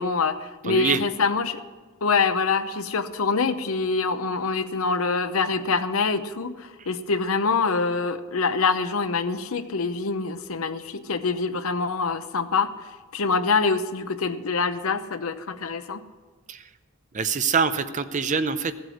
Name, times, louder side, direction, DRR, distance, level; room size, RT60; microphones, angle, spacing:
voice 1, 0.0-1.6 2.0-16.0, left 4 dB, 80° left, 10 dB, 0.8 m, -25 dB
voice 2, 0.6-1.0 6.8-6.9 16.5-16.6 17.1-18.8, right 5 dB, 35° right, 11 dB, 0.6 m, -25 dB
15.5 x 8.1 x 6.4 m, 1.4 s
head